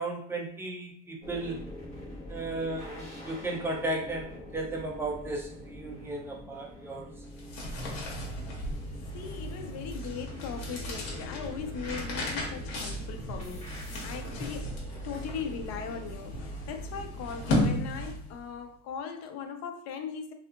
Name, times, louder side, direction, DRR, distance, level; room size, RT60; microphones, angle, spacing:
voice 1, 0.0-1.6 2.3-7.1, right 2 dB, 10° right, -1 dB, 0.4 m, -35 dB
sound 1, 1.2-18.1, equal, 20° left, 0.8 m, -45 dB
sound 2, 7.2-18.4, left 1 dB, 80° left, 1.0 m, -35 dB
voice 2, 9.1-14.8 15.0-20.3, left 6 dB, 55° left, 6 dB, 0.5 m, -39 dB
2.7 x 2.4 x 2.4 m, 0.65 s
cardioid pair, 150°, 32 cm